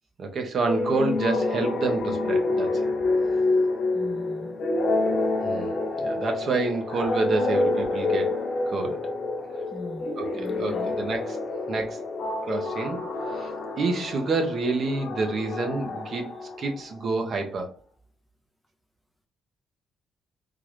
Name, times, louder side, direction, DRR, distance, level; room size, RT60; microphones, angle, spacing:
voice 1, 0.2-2.9 5.4-8.3 8.7-9.0 10.2-11.4 11.7-12.0 12.5-13.0 13.3-13.5 13.8-16.3 16.6-17.8, right 3 dB, 55° right, 0.9 m, -28 dB
sound 1, 0.6-17.0, left 2 dB, 65° left, 1.0 m, -28 dB
voice 2, 3.9-4.6 9.7-11.0, left 1 dB, 5° left, 0.4 m, -39 dB
3.7 x 2.4 x 3.1 m
cardioid pair, 90°, 0 cm